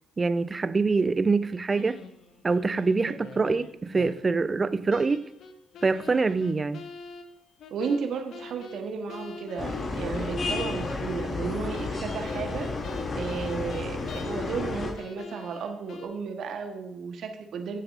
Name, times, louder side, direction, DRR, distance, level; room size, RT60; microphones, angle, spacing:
voice 1, 0.2-2.0 2.4-5.2 5.8-6.8, right 4 dB, 35° right, 0.7 m, -25 dB
sound 1, 1.8-4.4 4.9-11.4 11.7-14.7 15.0-16.1, left 4 dB, 60° left, 1.1 m, -45 dB
voice 2, 7.7-12.7 13.1-17.8, right 5 dB, 60° right, 1.4 m, -33 dB
sound 2, 9.6-14.9, left 3 dB, 45° left, 3.0 m, -32 dB
16.0 x 7.5 x 2.7 m
hypercardioid pair, 40°, 0 cm